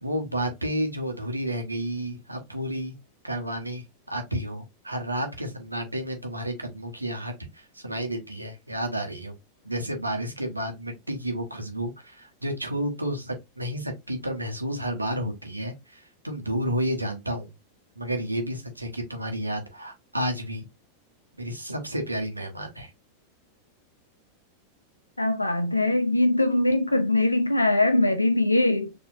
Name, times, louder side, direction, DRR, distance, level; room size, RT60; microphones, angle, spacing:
voice 1, 0.0-3.0 3.2-9.4 9.6-17.5 18.0-20.7 21.4-22.9, equal, 85° right, 1.0 m, -31 dB
voice 2, 25.2-28.9, left 2 dB, 85° left, 0.4 m, -22 dB
4.3 x 2.7 x 2.7 m
figure-of-eight pair, 90°, 0 cm